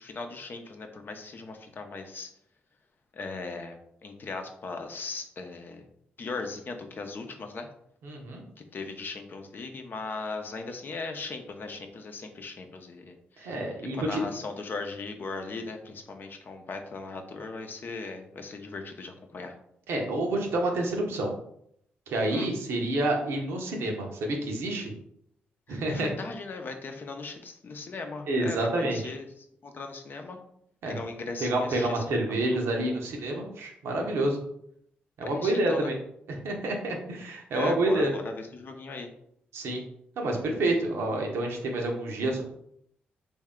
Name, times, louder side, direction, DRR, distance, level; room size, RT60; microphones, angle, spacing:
voice 1, 0.0-2.3 3.1-5.9 6.2-7.7 8.7-19.5 22.3-22.5 25.7-30.4 30.9-32.0 35.2-35.9 37.5-39.1, left 3 dB, 50° left, 5 dB, 0.7 m, -38 dB
voice 2, 8.0-8.4 13.4-14.2 19.9-21.3 22.1-24.9 25.7-26.1 28.3-29.0 30.8-31.0 31.4-34.4 35.2-36.0 36.3-38.1 39.5-39.8 40.2-42.4, right 1 dB, 75° right, 1 dB, 0.8 m, -28 dB
3.2 x 2.7 x 3.6 m, 0.72 s
supercardioid pair, 55°, 4 cm